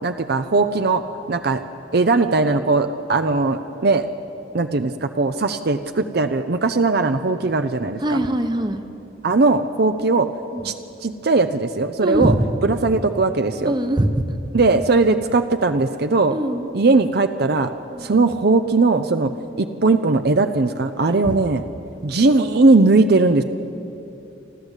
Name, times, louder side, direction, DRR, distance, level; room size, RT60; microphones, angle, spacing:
voice 1, 0.0-1.0 1.3-1.6 1.9-4.1 4.5-8.2 9.2-10.3 10.6-10.7 11.0-12.3 12.6-13.7 14.5-16.4 16.7-17.7 18.0-19.3 19.6-21.6 22.0-23.4, right 3 dB, 55° right, 9 dB, 0.6 m, -19 dB
voice 2, 8.0-8.8 10.5-10.7 12.0-12.5 13.6-14.2 16.3-16.7 17.9-18.1 19.3-19.4 21.1-21.4, right 1 dB, 25° right, 8 dB, 1.0 m, -22 dB
28.0 x 12.0 x 8.2 m, 2.8 s
head